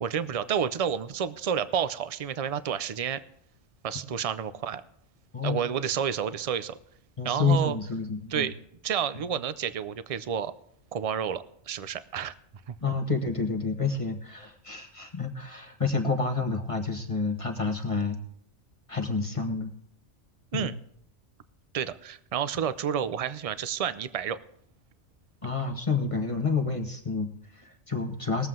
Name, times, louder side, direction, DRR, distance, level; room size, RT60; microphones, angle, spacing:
voice 1, 0.0-3.2 3.8-4.8 5.4-6.8 7.2-7.8 8.3-8.5 8.8-10.5 10.9-12.3 12.7-12.8 20.5-20.8 21.7-24.4, right 8 dB, 45° right, 14 dB, 0.4 m, -30 dB
voice 2, 7.2-8.5 12.8-18.2 18.9-19.7 20.5-20.7 25.4-28.5, left 4 dB, 30° left, 3 dB, 1.2 m, -29 dB
21.0 x 7.6 x 3.7 m, 0.70 s
omnidirectional pair, 1.2 m